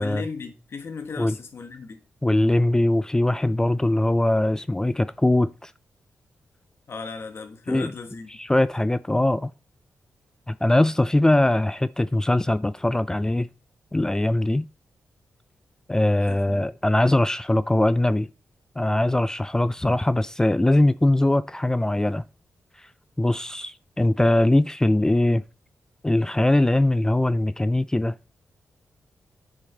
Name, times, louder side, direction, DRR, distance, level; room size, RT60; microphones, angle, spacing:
voice 1, 0.0-2.0 6.9-8.3 16.2-16.7, left 5 dB, 55° left, 1.3 m, -36 dB
voice 2, 2.2-5.7 7.7-7.9 8.4-9.5 10.5-13.5 13.9-14.7 15.9-18.3 18.8-22.2 23.2-25.4 26.0-28.1, left 1 dB, 10° left, 0.3 m, -21 dB
9.9 x 5.1 x 3.8 m
cardioid pair, 80°, 5 cm